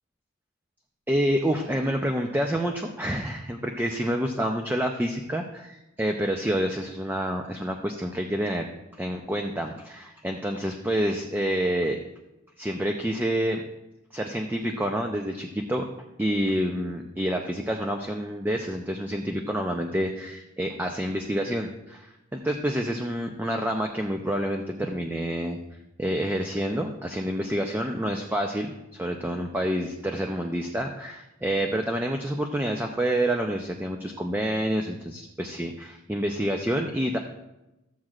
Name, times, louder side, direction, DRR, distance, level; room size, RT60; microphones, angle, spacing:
voice 1, 1.1-8.7 9.0-12.0 12.6-13.6 14.1-15.9 16.2-25.6 26.0-37.2, equal, 10° right, 3 dB, 0.5 m, -28 dB
14.5 x 7.5 x 2.4 m, 0.96 s
head